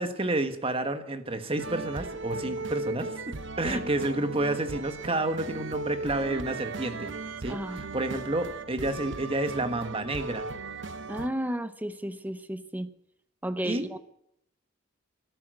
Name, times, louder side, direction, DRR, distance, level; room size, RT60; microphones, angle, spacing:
voice 1, 0.0-3.1 3.6-7.1 7.4-10.5 13.6-13.9, right 2 dB, 30° right, 8 dB, 1.4 m, -30 dB
sound 1, 1.6-11.3, right 3 dB, 60° right, 0.9 m, -37 dB
voice 2, 7.5-7.8 11.1-12.9 13.4-14.0, equal, 10° right, 12 dB, 0.8 m, -33 dB
13.5 x 11.0 x 7.9 m, 0.78 s
head